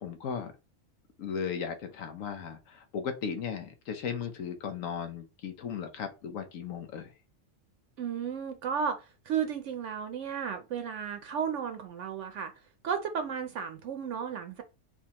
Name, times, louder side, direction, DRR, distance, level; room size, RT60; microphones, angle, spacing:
voice 1, 0.0-0.5 1.2-7.1, left 7 dB, 85° left, 1.2 m, -36 dB
voice 2, 8.0-12.5 12.8-14.6, right 7 dB, 70° right, 0.9 m, -34 dB
4.2 x 3.5 x 2.9 m
omnidirectional pair, 1.3 m